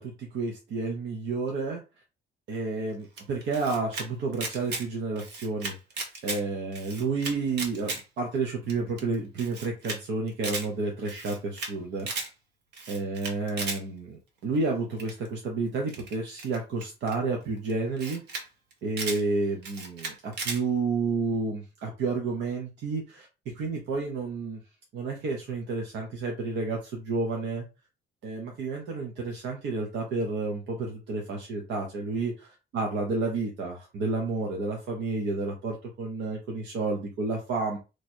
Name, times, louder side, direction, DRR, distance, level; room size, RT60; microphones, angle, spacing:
voice 1, 0.0-1.8 2.5-5.7 6.2-12.1 12.9-18.2 18.8-23.3 23.5-24.6 24.9-27.7 28.2-37.8, right 3 dB, 90° right, 0 dB, 1.1 m, -30 dB
Camera, 3.2-4.1 4.3-4.8 5.2-6.4 6.7-8.0 8.4-8.5 8.7-8.8 9.0-9.1 9.4-10.0 10.3-10.7 11.1-11.7 12.0-12.3 12.7-13.8 15.0-15.3 15.9-17.1 17.7-17.8 18.0-18.4 18.7-19.2 19.6-20.6, right 3 dB, 70° right, 1.3 m, -35 dB
3.3 x 3.1 x 4.4 m, 0.28 s
cardioid pair, 135°, 18 cm